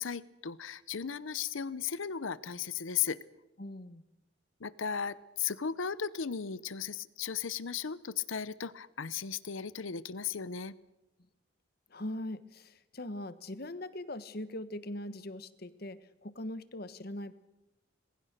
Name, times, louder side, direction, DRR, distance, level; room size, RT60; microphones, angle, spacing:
voice 1, 0.0-3.2 4.6-10.7, left 7 dB, 85° left, 18 dB, 0.8 m, -36 dB
voice 2, 3.6-4.0 11.9-17.3, left 1 dB, 50° left, 14 dB, 1.2 m, -41 dB
26.0 x 20.0 x 6.7 m, 0.96 s
head